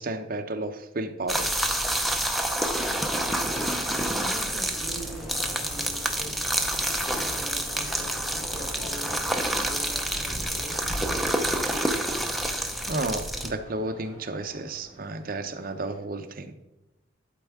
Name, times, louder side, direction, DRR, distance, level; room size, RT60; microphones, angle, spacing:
voice 1, 0.0-1.5 12.9-16.5, right 2 dB, 45° right, 6 dB, 0.6 m, -32 dB
sound 1, 1.3-13.5, right 1 dB, ahead, 0.5 m, -28 dB
sound 2, 2.7-16.0, equal, 50° left, 1.8 m, -44 dB
sound 3, 3.0-7.8, left 11 dB, 80° left, 0.5 m, -43 dB
voice 2, 3.8-11.7, right 1 dB, 30° left, -6 dB, 1.7 m, -44 dB
11.5 x 4.5 x 3.5 m, 0.99 s
head